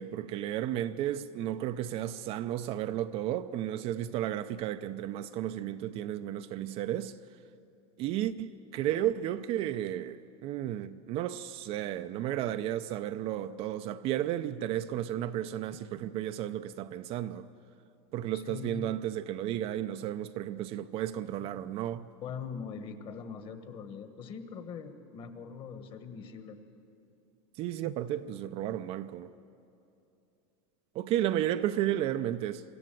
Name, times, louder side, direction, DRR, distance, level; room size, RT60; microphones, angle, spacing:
voice 1, 0.0-7.1 8.0-17.5 18.1-22.1 27.6-29.3 30.9-32.6, right 12 dB, 40° right, 0.5 m, -33 dB
voice 2, 18.3-18.8 21.3-21.5 22.2-26.6, left 6 dB, 35° left, 1.5 m, -42 dB
24.0 x 13.5 x 9.2 m
supercardioid pair, 150°, 15 cm